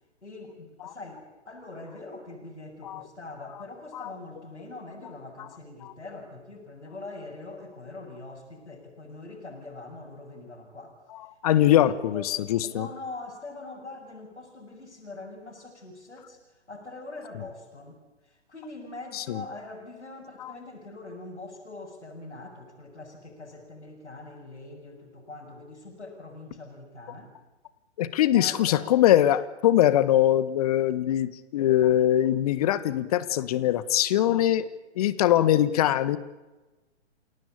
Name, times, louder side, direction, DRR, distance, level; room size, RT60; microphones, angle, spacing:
voice 1, 0.2-11.0 11.5-12.3 12.6-27.4 28.3-29.0 34.2-34.5, left 2 dB, 75° left, -3 dB, 6.8 m, -43 dB
voice 2, 11.4-12.9 19.1-19.4 20.4-20.5 28.0-34.6 34.9-36.2, left 12 dB, 35° left, 15 dB, 1.4 m, -22 dB
29.5 x 18.0 x 8.8 m, 1.1 s
figure-of-eight pair, 125°, 34 cm